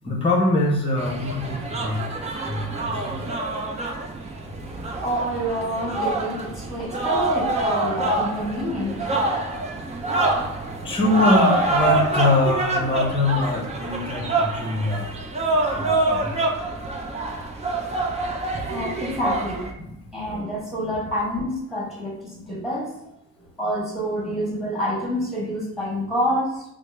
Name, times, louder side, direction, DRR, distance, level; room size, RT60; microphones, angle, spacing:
voice 1, 0.0-3.3 9.9-10.1 10.8-15.1 15.6-16.3 19.8-20.0, left 2 dB, 20° left, 0 dB, 0.8 m, -24 dB
sound 1, 1.0-19.7, right 2 dB, 20° right, 0.6 m, -26 dB
voice 2, 5.0-9.1 18.7-19.7 20.1-22.9 23.4-26.6, equal, ahead, -3 dB, 1.2 m, -27 dB
4.6 x 2.0 x 3.2 m, 0.82 s
cardioid pair, 90°, 30 cm